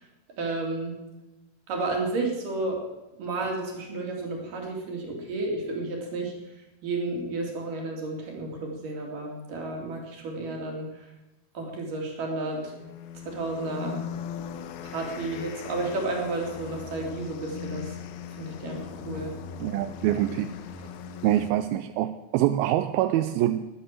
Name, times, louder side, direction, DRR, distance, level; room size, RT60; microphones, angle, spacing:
voice 1, 0.4-1.0 1.7-2.8 3.2-6.3 6.8-11.1 11.5-12.7 13.3-14.1 14.8-17.9 18.4-19.4, right 2 dB, 60° right, 1 dB, 4.1 m, -32 dB
sound 1, 12.4-21.5, left 7 dB, 80° left, 2.7 m, -39 dB
voice 2, 19.6-20.5 21.2-23.7, right 13 dB, 80° right, 10 dB, 2.3 m, -25 dB
13.5 x 11.5 x 7.4 m, 1.1 s
omnidirectional pair, 4.5 m